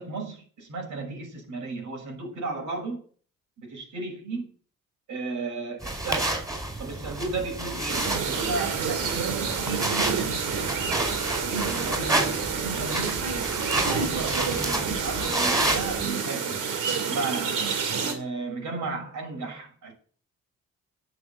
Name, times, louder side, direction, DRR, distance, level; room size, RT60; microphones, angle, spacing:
voice 1, 0.0-3.0 3.6-4.5 5.1-6.5 6.8-10.9 11.5-13.3 13.7-16.6 17.0-17.6 18.0-19.9, right 3 dB, 70° right, 6.5 m, -34 dB
sound 1, 5.8-16.1, right 1 dB, 10° right, 5.0 m, -30 dB
sound 2, 7.9-18.1, right 6 dB, 85° right, 2.5 m, -29 dB
11.0 x 7.3 x 8.8 m
cardioid pair, 90°, 30 cm